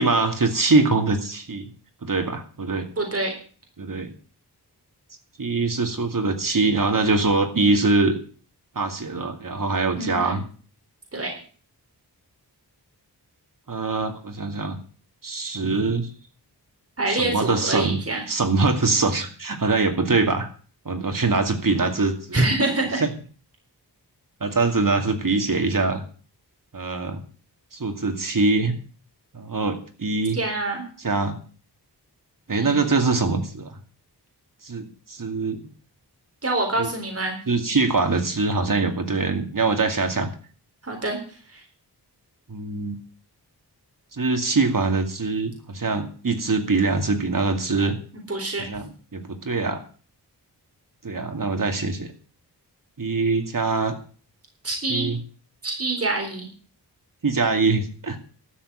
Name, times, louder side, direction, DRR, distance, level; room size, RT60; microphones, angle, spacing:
voice 1, 0.0-1.7 2.0-2.9 3.8-4.1 5.4-8.2 8.8-10.4 13.7-14.8 15.2-16.1 17.1-18.0 18.3-20.5 20.9-22.4 23.0-23.1 24.4-26.0 26.7-27.2 27.7-28.7 29.3-30.4 31.0-31.4 32.5-33.8 34.6-35.6 36.8-36.9 37.5-40.3 42.5-43.0 44.1-48.0 48.7-49.8 51.0-52.1 53.0-54.0 54.9-55.2 57.2-58.2, right 3 dB, 50° right, 5 dB, 2.4 m, -23 dB
voice 2, 3.0-3.3 10.0-10.4 11.1-11.3 17.0-18.2 22.3-23.0 30.3-30.8 32.5-32.8 36.4-37.4 40.8-41.2 41.5-41.6 48.3-48.6 54.6-55.1 55.6-56.5, right 2 dB, 35° right, 2 dB, 4.0 m, -25 dB
13.0 x 7.2 x 8.6 m, 0.41 s
wide cardioid pair, 90°, 41 cm